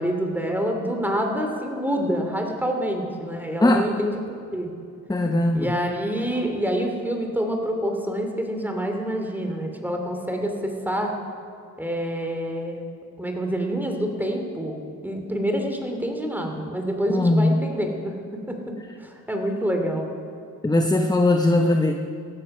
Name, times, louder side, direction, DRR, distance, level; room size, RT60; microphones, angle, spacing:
voice 1, 0.0-4.7 5.5-11.1 11.8-12.8 13.2-18.2 18.5-20.1, equal, 5° right, 3 dB, 2.7 m, -27 dB
voice 2, 5.1-5.7 17.1-17.6 20.6-21.9, left 2 dB, 10° left, 6 dB, 0.8 m, -19 dB
17.0 x 14.0 x 5.5 m, 2.5 s
cardioid pair, 75°, 31 cm